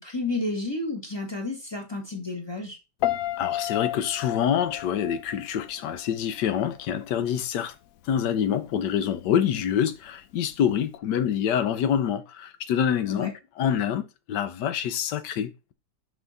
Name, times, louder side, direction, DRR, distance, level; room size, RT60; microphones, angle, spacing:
voice 1, 0.0-2.8 13.0-13.3, left 2 dB, 15° left, 1.6 m, -31 dB
Piano, 3.0-6.1 6.4-6.8, left 14 dB, 70° left, 0.9 m, -31 dB
voice 2, 3.4-7.7 8.0-13.3 13.6-15.7, left 9 dB, 85° left, 1.4 m, -26 dB
5.7 x 5.4 x 4.0 m
omnidirectional pair, 1.8 m